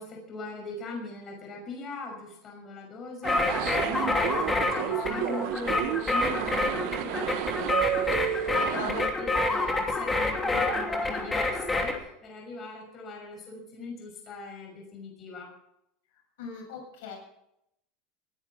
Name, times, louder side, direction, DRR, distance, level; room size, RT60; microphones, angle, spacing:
voice 1, 0.0-15.5, left 2 dB, 30° left, 1 dB, 5.8 m, -40 dB
sound 1, 3.2-12.0, left 2 dB, 15° left, 2.9 m, -28 dB
sound 2, 3.2-9.1, right 14 dB, 65° right, 0.9 m, -31 dB
voice 2, 8.7-9.0 16.4-17.2, left 4 dB, 85° left, 1 dB, 7.6 m, -37 dB
21.0 x 10.5 x 6.1 m, 0.78 s
supercardioid pair, 145°, 0 cm